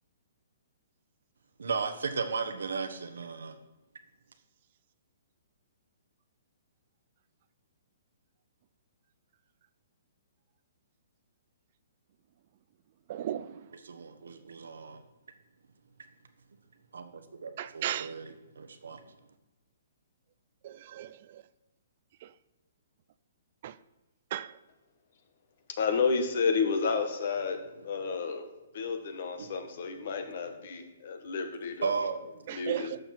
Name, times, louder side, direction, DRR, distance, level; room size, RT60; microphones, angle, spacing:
voice 1, 1.6-3.6 13.7-15.0 16.9-19.0 31.8-32.6, right 5 dB, 85° right, 8 dB, 1.2 m, -35 dB
voice 2, 13.1-13.6 17.6-18.1 20.6-21.4 22.2-22.3 23.6-23.7 24.3-24.5 32.5-33.0, right 12 dB, 50° right, 16 dB, 0.4 m, -36 dB
voice 3, 25.8-27.6 27.8-28.5 28.7-31.9 32.5-32.9, left 5 dB, 60° left, 7 dB, 1.6 m, -31 dB
11.5 x 6.8 x 4.5 m, 1.0 s
hypercardioid pair, 150°, 0 cm